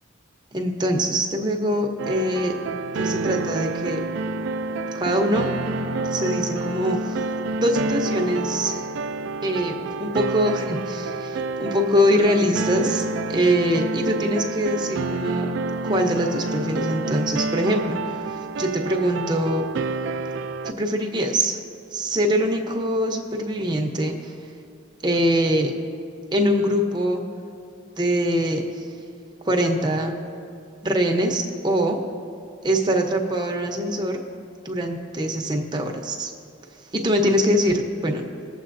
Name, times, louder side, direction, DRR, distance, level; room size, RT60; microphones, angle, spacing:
voice 1, 0.5-2.5 2.9-4.0 4.9-5.5 6.1-7.3 7.5-8.9 9.4-9.7 10.0-15.5 15.8-19.6 20.6-21.6 21.9-24.3 25.0-25.7 26.3-27.2 28.0-28.8 29.4-30.2 30.8-32.0 32.6-34.2 34.6-36.3 36.9-38.2, equal, 20° right, 1 dB, 0.7 m, -23 dB
sound 1, 2.0-20.7, right 3 dB, 65° right, 0.3 m, -28 dB
21.0 x 7.2 x 2.6 m, 2.5 s
head